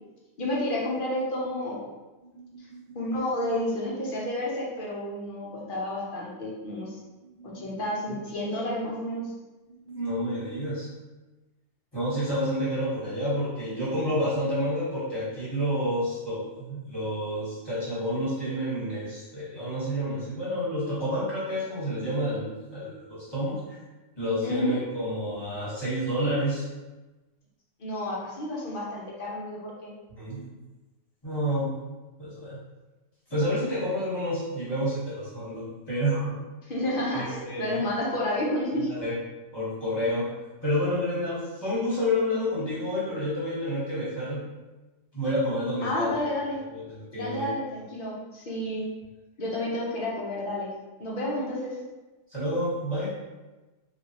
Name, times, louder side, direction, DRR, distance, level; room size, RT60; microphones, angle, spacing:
voice 1, 0.4-1.9 2.9-7.0 7.4-9.3 24.4-24.7 27.8-29.9 36.6-38.9 45.8-46.6 47.1-48.9 49.4-50.7 51.0-51.8, left 1 dB, 50° left, -4 dB, 0.8 m, -30 dB
voice 2, 2.3-2.8 7.2-7.7 9.7-10.9 11.9-23.6 24.2-26.6 30.1-30.5 31.2-31.7 32.2-32.6 33.3-36.4 37.1-37.8 38.8-39.1 39.5-40.3 40.6-44.5 45.1-46.1 46.7-47.5 52.3-53.1, equal, 20° left, -10 dB, 1.3 m, -29 dB
3.2 x 2.6 x 2.8 m, 1.1 s
omnidirectional pair, 1.3 m